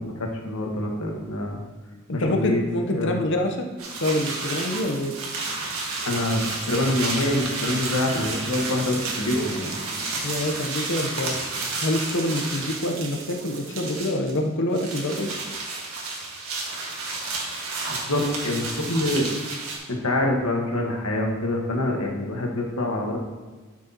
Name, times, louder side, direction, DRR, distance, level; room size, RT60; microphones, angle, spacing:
voice 1, 0.0-1.6 2.1-2.6 2.9-3.2 6.0-9.7 17.9-19.3 19.9-23.2, left 1 dB, 90° left, 0 dB, 1.5 m, -26 dB
voice 2, 2.1-3.7 4.0-5.1 10.2-11.3 11.8-15.3, left 1 dB, 60° left, 3 dB, 0.9 m, -26 dB
sound 1, 3.8-12.9 13.2-14.4 14.7-19.8, right 3 dB, 90° right, 1.8 m, -31 dB
sound 2, 3.9-13.9, right 4 dB, 65° right, 1.0 m, -39 dB
12.0 x 6.2 x 2.9 m, 1.3 s
head